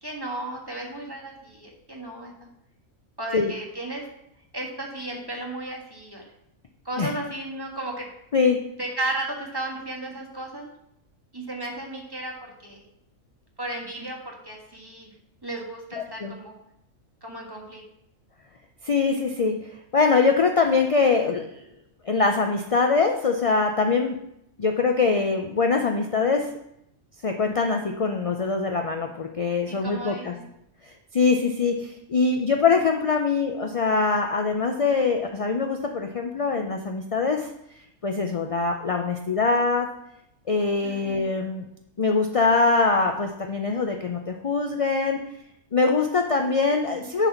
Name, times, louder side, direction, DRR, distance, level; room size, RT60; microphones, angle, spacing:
voice 1, 0.0-2.5 3.2-4.1 4.5-6.3 6.8-8.1 8.8-10.7 11.3-12.9 13.6-15.1 15.4-16.5 17.2-17.8 29.7-30.5 40.8-41.3 46.8-47.1, right 2 dB, 20° right, -1 dB, 1.5 m, -34 dB
voice 2, 15.9-16.3 18.8-19.6 19.9-21.6 22.0-24.2 24.6-26.5 27.2-30.3 30.8-37.5 38.0-39.9 40.5-41.7 42.0-45.2 45.7-47.3, left 4 dB, 50° left, 4 dB, 0.4 m, -23 dB
10.0 x 4.1 x 5.8 m, 0.80 s
omnidirectional pair, 1.4 m